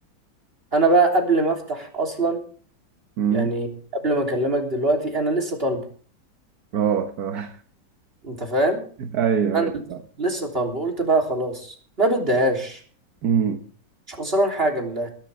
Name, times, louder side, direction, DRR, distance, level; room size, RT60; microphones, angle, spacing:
voice 1, 0.7-2.4 3.3-3.7 4.0-5.8 8.2-8.8 9.5-9.7 10.2-12.8 14.1-15.1, right 2 dB, 30° right, 3 dB, 3.6 m, -22 dB
voice 2, 3.2-3.5 6.7-7.6 9.0-10.0 13.2-13.6, right 7 dB, 55° right, 7 dB, 1.5 m, -23 dB
22.0 x 11.5 x 3.5 m, 0.43 s
omnidirectional pair, 2.2 m